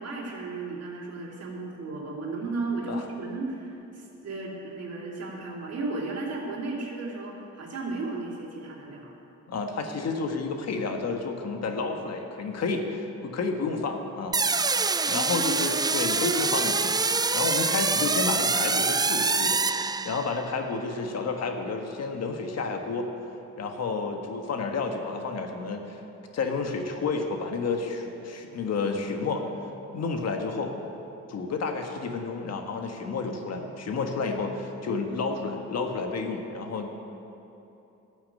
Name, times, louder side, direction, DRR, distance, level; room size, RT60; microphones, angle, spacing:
voice 1, 0.0-9.1, right 3 dB, 55° right, -2 dB, 2.9 m, -34 dB
voice 2, 9.5-14.4 15.1-17.0 17.3-19.6 20.0-23.1 23.6-26.0 26.3-29.4 29.9-30.7 31.3-36.9, left 4 dB, 60° left, 4 dB, 1.5 m, -30 dB
sound 1, 14.3-20.5, right 4 dB, 15° right, 0.3 m, -25 dB
13.5 x 7.1 x 8.6 m, 3.0 s
cardioid pair, 90°, 30 cm